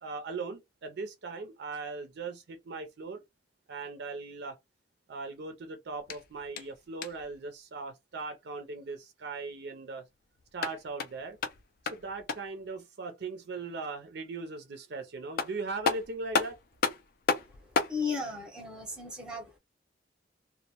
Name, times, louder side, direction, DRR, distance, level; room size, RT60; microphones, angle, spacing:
voice 1, 0.0-3.2 3.7-4.6 5.1-10.0 10.5-11.4 11.9-16.6, right 3 dB, 60° right, 0.5 m, -39 dB
sound 1, 6.0-7.4 10.4-12.6 14.9-15.0 15.4-18.0, left 4 dB, 50° left, 0.4 m, -33 dB
voice 2, 17.9-19.6, left 4 dB, 5° right, 0.7 m, -35 dB
2.2 x 2.1 x 2.8 m
head